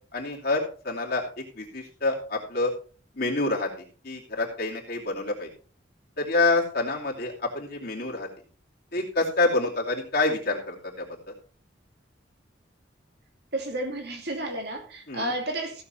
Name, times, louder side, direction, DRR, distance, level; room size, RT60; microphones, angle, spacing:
voice 1, 0.1-2.7 3.1-3.7 4.0-5.5 6.2-8.3 8.9-11.1 15.1-15.3, left 2 dB, 55° left, 2.7 m, -27 dB
voice 2, 13.5-15.8, right 1 dB, 60° right, 2.7 m, -31 dB
15.5 x 6.7 x 4.3 m
head